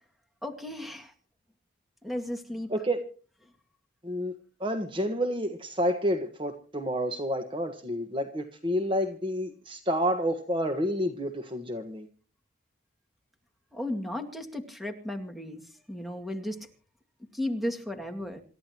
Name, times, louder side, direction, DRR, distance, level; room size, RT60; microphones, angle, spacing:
voice 1, 0.4-1.1 2.0-2.7 13.7-15.6 15.9-16.6 17.3-18.4, left 1 dB, ahead, 3 dB, 2.2 m, -34 dB
voice 2, 2.7-3.0 4.0-12.1, equal, 25° right, 7 dB, 1.4 m, -29 dB
27.5 x 13.5 x 3.0 m, 0.39 s
head